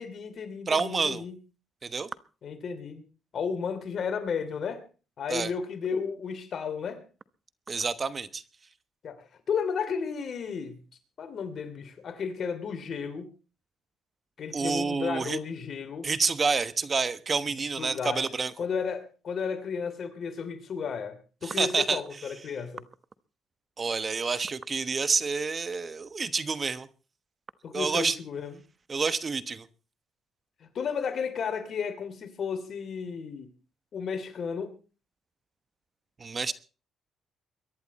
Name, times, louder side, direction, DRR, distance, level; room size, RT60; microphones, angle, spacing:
voice 1, 0.0-1.4 2.4-3.0 3.3-4.8 5.2-7.0 9.0-10.8 11.2-13.3 14.4-16.1 17.8-18.2 18.6-22.8 27.6-28.6 30.7-33.5 33.9-34.8, left 6 dB, 55° left, 2.9 m, -33 dB
voice 2, 0.7-1.2 1.8-2.1 5.3-5.5 7.7-8.4 14.5-15.4 16.0-18.5 21.4-22.0 23.8-26.9 27.7-28.2 28.9-29.7 36.2-36.5, right 4 dB, 35° right, 1.1 m, -28 dB
23.0 x 11.0 x 4.2 m
cardioid pair, 85°, 0 cm